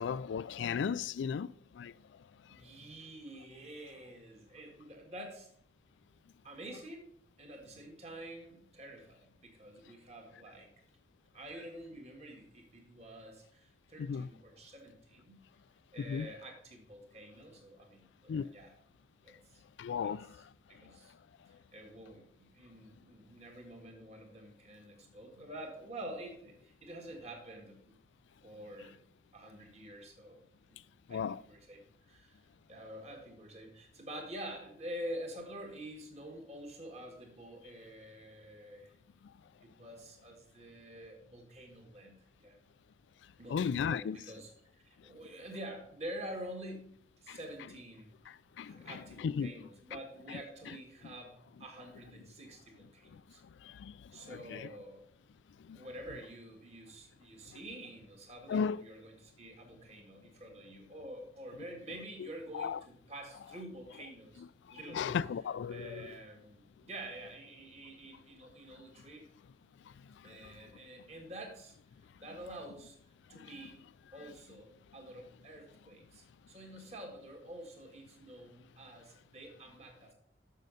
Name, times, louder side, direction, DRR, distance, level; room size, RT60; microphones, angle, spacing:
voice 1, 0.0-1.9 14.0-14.3 16.0-16.3 18.3-18.5 19.8-20.3 31.1-31.4 43.5-44.2 47.3-47.4 48.3-49.5 50.3-50.4 53.1-53.2 53.6-54.7 55.7-55.8 58.5-58.8 62.5-62.8 64.7-66.1 70.2-70.5 73.4-73.5, left 6 dB, 85° left, 0.3 m, -36 dB
voice 2, 2.5-5.5 6.4-7.1 7.4-10.7 11.3-15.4 15.9-18.7 19.2-19.6 20.0-20.4 20.7-21.1 21.7-27.9 28.4-29.0 29.3-30.4 30.7-30.8 31.1-31.8 32.1-32.4 32.7-38.9 39.6-42.6 43.4-48.1 48.6-53.4 54.1-55.1 55.7-64.4 64.7-65.1 65.7-69.2 70.2-71.8 72.2-73.0 73.3-73.8 74.1-80.1, right 1 dB, 35° right, 1.7 m, -48 dB
6.6 x 6.5 x 5.1 m
head